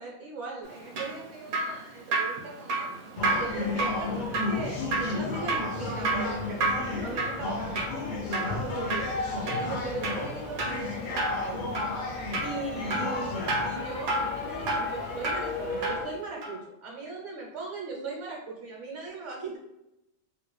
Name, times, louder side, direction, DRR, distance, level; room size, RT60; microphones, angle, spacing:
voice 1, 0.0-2.9 3.3-11.7 12.4-19.6, right 3 dB, 60° right, -3 dB, 1.1 m, -39 dB
Drip, 0.7-16.1 16.4-16.6, right 2 dB, 90° right, 1.3 m, -32 dB
sound 1, 3.2-16.1, left 3 dB, 85° left, 0.4 m, -33 dB
3.3 x 2.4 x 3.1 m, 0.87 s
omnidirectional pair, 1.5 m